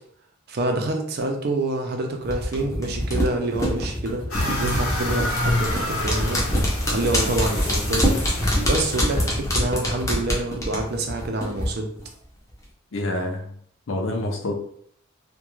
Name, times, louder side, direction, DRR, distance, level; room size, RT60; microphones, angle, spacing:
voice 1, 0.5-6.4 6.9-8.1 8.7-11.9, right 2 dB, 50° right, 3 dB, 0.4 m, -27 dB
sound 1, 2.3-11.7 12.0-12.1, equal, 15° left, 0.5 m, -25 dB
sound 2, 4.3-9.5, left 1 dB, 90° left, 0.8 m, -27 dB
voice 2, 12.9-13.5 13.9-14.6, left 1 dB, 65° left, 2 dB, 0.5 m, -27 dB
2.4 x 2.2 x 3.0 m, 0.64 s
head